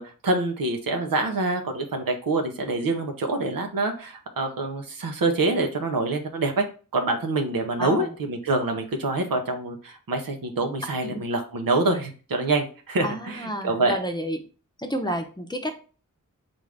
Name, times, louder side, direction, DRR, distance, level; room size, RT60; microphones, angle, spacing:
voice 1, 0.0-6.7 6.9-14.0, right 2 dB, 90° right, 3 dB, 0.7 m, -26 dB
voice 2, 7.8-8.1 11.0-11.2 13.0-14.4 14.8-15.8, equal, 15° left, 5 dB, 0.6 m, -30 dB
3.5 x 2.6 x 3.3 m, 0.37 s
cardioid pair, 45°, 33 cm